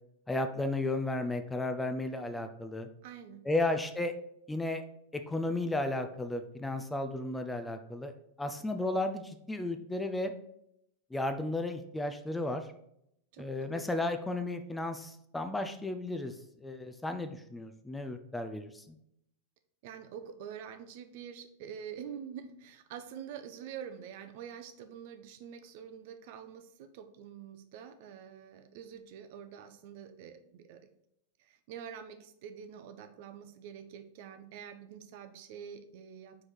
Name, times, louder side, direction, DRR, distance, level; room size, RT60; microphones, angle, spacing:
voice 1, 0.3-2.9 3.5-4.1 4.5-4.8 5.1-8.1 8.4-10.3 11.1-12.7 13.4-16.3 16.6-19.0, left 2 dB, 10° left, 7 dB, 0.5 m, -34 dB
voice 2, 3.0-3.4 13.3-13.8 19.8-30.9 31.4-36.5, right 8 dB, 50° right, 8 dB, 0.6 m, -46 dB
4.8 x 4.6 x 4.2 m, 0.76 s
figure-of-eight pair, 90°, 0 cm